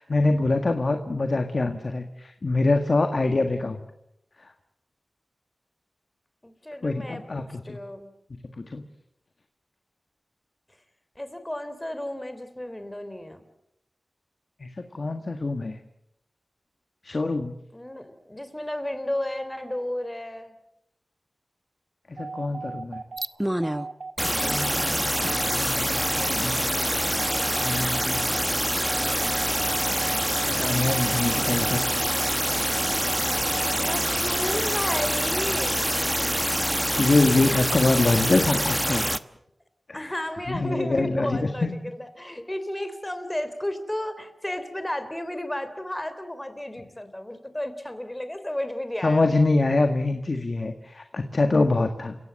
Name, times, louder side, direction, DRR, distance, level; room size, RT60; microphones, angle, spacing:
voice 1, 0.0-3.8 4.4-4.5 6.8-7.8 8.6-8.8 14.6-15.8 17.0-17.5 22.1-23.0 24.2-26.6 27.6-28.3 30.5-31.8 37.0-39.0 39.9-40.2 40.5-41.8 49.0-52.2, left 2 dB, 55° left, 6 dB, 1.7 m, -25 dB
voice 2, 6.4-8.1 11.2-13.4 17.7-20.6 24.4-24.7 33.8-35.9 39.9-49.3, left 1 dB, 15° left, 10 dB, 3.4 m, -33 dB
sound 1, 22.2-34.2, right 4 dB, 85° right, 1.5 m, -38 dB
sound 2, 23.2-23.9 24.2-39.2, equal, 10° right, 1.0 m, -25 dB
30.0 x 17.0 x 7.7 m, 0.82 s
wide cardioid pair, 60°, 0 cm